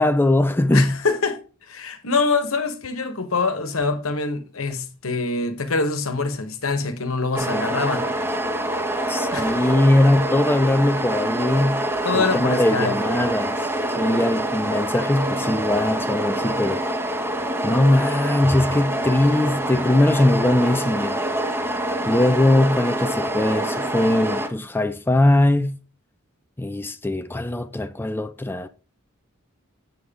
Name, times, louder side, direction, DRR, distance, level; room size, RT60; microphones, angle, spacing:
voice 1, 0.0-1.0 9.1-11.8 12.1-16.8 17.6-21.2 22.1-25.8 26.6-28.7, left 1 dB, 10° left, 0.4 m, -20 dB
voice 2, 0.7-1.4 1.7-8.1 9.3-9.7 12.0-12.9, left 4 dB, 80° left, 1.3 m, -24 dB
sound 1, 7.3-24.5, right 1 dB, 10° right, 0.9 m, -26 dB
7.8 x 6.9 x 3.7 m
head